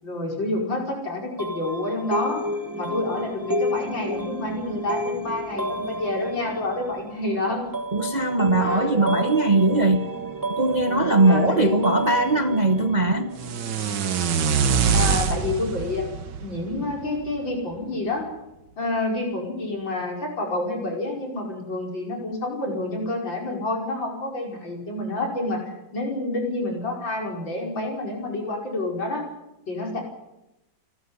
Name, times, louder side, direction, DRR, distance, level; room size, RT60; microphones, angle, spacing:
voice 1, 0.0-2.4 2.7-7.7 8.5-9.3 11.3-11.8 14.9-16.0 16.4-18.2 18.8-29.2 29.7-30.0, left 2 dB, 70° left, 0 dB, 6.1 m, -28 dB
sound 1, 1.4-14.0, right 1 dB, 10° right, 1.2 m, -31 dB
voice 2, 7.9-10.1 10.5-13.3, right 2 dB, 30° right, 7 dB, 0.9 m, -20 dB
sound 2, 13.4-17.5, right 6 dB, 65° right, 1.8 m, -24 dB
28.5 x 12.5 x 9.6 m, 0.93 s
omnidirectional pair, 2.1 m